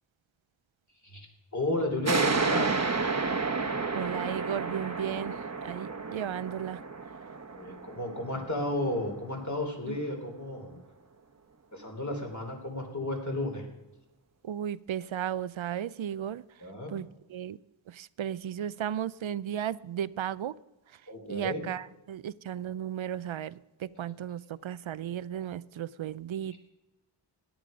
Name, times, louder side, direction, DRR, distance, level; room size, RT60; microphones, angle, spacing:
voice 1, 1.5-2.9 7.6-10.8 11.7-13.6 16.6-16.9 21.1-21.6, left 1 dB, 40° left, 2 dB, 3.4 m, -33 dB
sound 1, 2.0-9.2, right 4 dB, 35° right, 1.1 m, -31 dB
voice 2, 3.9-6.8 9.9-10.0 14.4-16.4 16.9-17.6 17.9-20.6 21.3-26.7, right 10 dB, 80° right, 18 dB, 0.6 m, -35 dB
17.0 x 10.5 x 5.1 m, 1.0 s
wide cardioid pair, 70°, 46 cm